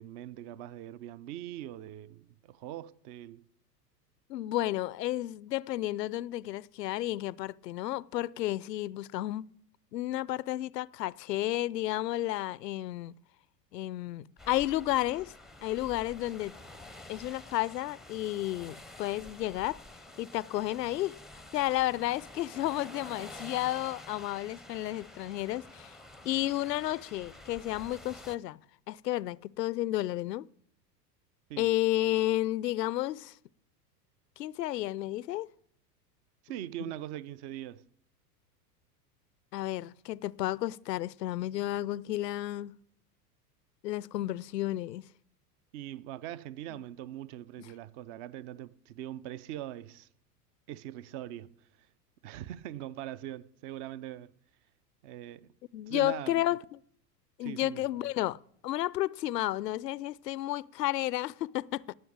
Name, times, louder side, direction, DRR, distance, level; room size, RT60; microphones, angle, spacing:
voice 1, 0.0-3.4 31.5-31.7 36.4-37.9 45.7-50.1 50.7-51.5 52.2-54.3 55.0-55.5 55.9-56.4 57.4-57.8, right 12 dB, 50° right, 0.8 m, -42 dB
voice 2, 4.3-9.5 9.9-13.1 13.7-15.3 15.6-16.5 17.1-19.8 20.2-21.1 21.5-25.9 26.2-28.6 28.9-30.5 31.6-33.4 34.4-35.5 39.5-42.8 43.8-45.1 47.6-47.7 55.7-56.6 57.4-61.9, left 15 dB, 80° left, 0.6 m, -32 dB
sound 1, 14.4-28.4, left 2 dB, ahead, 0.6 m, -49 dB
17.5 x 6.5 x 8.8 m
hypercardioid pair, 95°, 48 cm